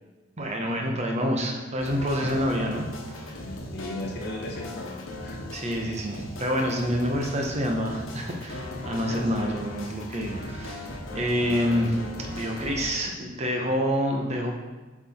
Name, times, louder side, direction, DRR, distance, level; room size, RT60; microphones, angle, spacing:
voice 1, 0.4-3.3 5.5-12.0 12.3-14.6, equal, 35° right, 1 dB, 1.1 m, -27 dB
sound 1, 1.8-12.9, left 1 dB, 80° left, 1.2 m, -38 dB
voice 2, 3.3-4.9 5.2-5.5 9.0-9.5 10.2-10.4 11.4-11.9, left 1 dB, 55° left, -2 dB, 1.0 m, -37 dB
7.7 x 4.7 x 4.3 m, 1.2 s
head